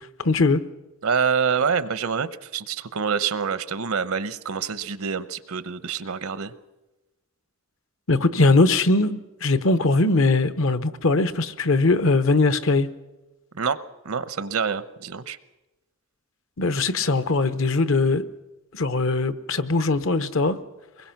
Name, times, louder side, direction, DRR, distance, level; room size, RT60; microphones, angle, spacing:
voice 1, 0.2-0.6 8.1-12.9 16.6-18.3 18.7-20.6, left 3 dB, 65° left, 0.9 m, -20 dB
voice 2, 1.0-6.5 13.5-13.8 14.0-15.4, right 6 dB, 75° right, 0.8 m, -26 dB
23.5 x 21.0 x 5.9 m
head